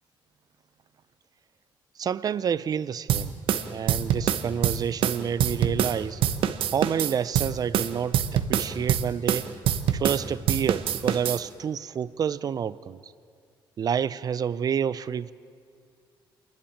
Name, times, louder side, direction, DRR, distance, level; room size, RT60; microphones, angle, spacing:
voice 1, 2.0-3.4 3.7-6.2 6.7-9.5 9.9-13.1 13.8-15.3, right 8 dB, 45° right, 17 dB, 0.6 m, -29 dB
sound 1, 3.1-6.0 6.2-10.2 10.5-11.4, right 9 dB, 80° right, 1.0 m, -25 dB
27.5 x 12.0 x 8.9 m, 2.3 s
cardioid pair, 110°, 9 cm